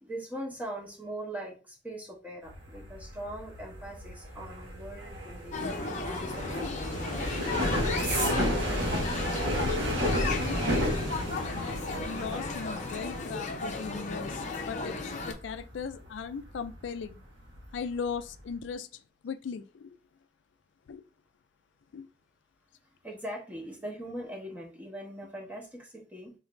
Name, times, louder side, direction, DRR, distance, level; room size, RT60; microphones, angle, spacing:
voice 1, 0.0-8.3 8.6-9.3 23.0-26.3, right 1 dB, 10° right, 0.8 m, -42 dB
sound 1, 2.5-17.1 17.4-17.9 18.1-18.5, equal, 65° right, 1.2 m, -32 dB
sound 2, 5.5-15.3, left 3 dB, 40° left, 0.7 m, -35 dB
voice 2, 10.5-10.9 11.4-14.9 15.2-17.2 17.7-20.0 20.9-21.0 21.9-22.1, left 6 dB, 70° left, 0.4 m, -38 dB
3.8 x 2.5 x 3.2 m
head